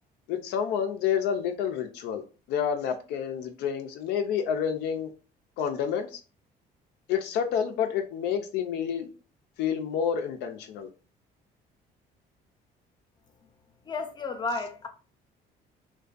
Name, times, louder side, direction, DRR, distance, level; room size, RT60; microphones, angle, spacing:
voice 1, 0.3-2.2 2.5-5.1 5.6-6.2 7.1-9.1 9.6-10.9, left 8 dB, 85° left, 0.4 m, -29 dB
voice 2, 13.9-14.9, left 3 dB, 25° left, 0.5 m, -32 dB
2.5 x 2.2 x 2.4 m
cardioid pair, 110°, 17 cm